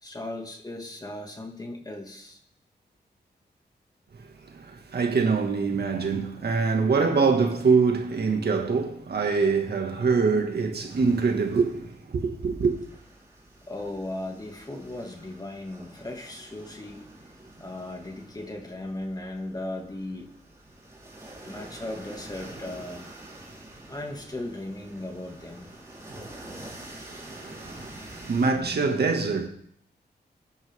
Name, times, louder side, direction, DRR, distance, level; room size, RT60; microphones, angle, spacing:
voice 1, 0.0-2.4 13.7-17.0 17.6-20.3 21.4-23.0 23.9-25.7, left 1 dB, 20° left, 2.2 m, -37 dB
voice 2, 4.4-12.7 27.0-27.9 28.2-29.5, right 4 dB, 65° right, 2.0 m, -24 dB
sound 1, 10.9-28.5, right 1 dB, 15° right, 4.1 m, -47 dB
24.5 x 10.0 x 3.7 m
wide cardioid pair, 120°, 18 cm